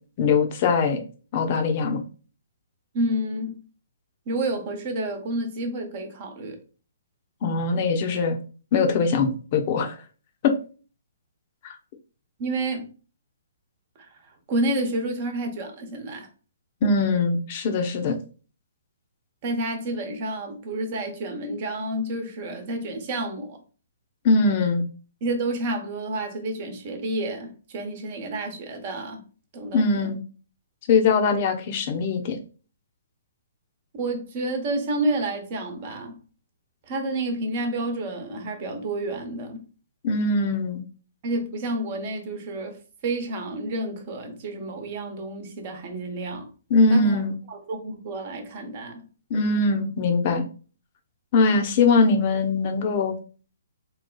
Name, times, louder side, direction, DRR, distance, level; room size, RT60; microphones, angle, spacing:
voice 1, 0.2-1.0 1.3-2.0 7.4-8.4 8.7-10.0 10.4-10.5 11.6-11.7 16.8-18.2 24.2-24.9 29.7-30.2 30.9-32.4 40.0-40.8 46.7-47.4 49.3-50.4 51.3-53.1, left 4 dB, 40° left, 0.8 m, -21 dB
voice 2, 2.9-3.6 4.3-6.6 12.4-12.9 14.0-14.1 14.5-16.3 19.4-23.6 25.2-29.2 29.5-29.8 33.9-36.2 36.9-39.6 41.2-46.5 46.9-47.2 47.5-49.1, right 1 dB, 40° right, 1.1 m, -29 dB
3.9 x 2.3 x 3.9 m
hypercardioid pair, 135°, 0 cm